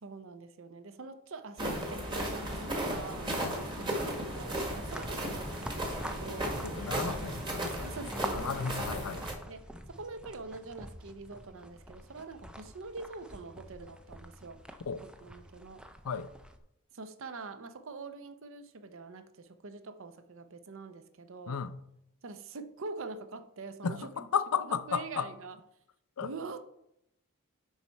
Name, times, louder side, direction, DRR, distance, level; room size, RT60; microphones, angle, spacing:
voice 1, 0.0-6.6 7.8-8.7 9.5-14.6 15.2-15.8 16.9-21.6 22.2-24.3 24.7-25.6 26.2-26.6, right 3 dB, 60° right, 0.6 m, -44 dB
sound 1, 1.6-9.3, right 1 dB, 20° right, 1.5 m, -35 dB
sound 2, 4.0-16.6, equal, 5° right, 0.4 m, -46 dB
voice 2, 6.6-8.0 8.3-9.3 14.9-15.0 16.0-16.3 21.5-21.8 23.8-25.3 26.2-26.3, left 6 dB, 80° left, 0.5 m, -34 dB
10.5 x 4.1 x 4.4 m
head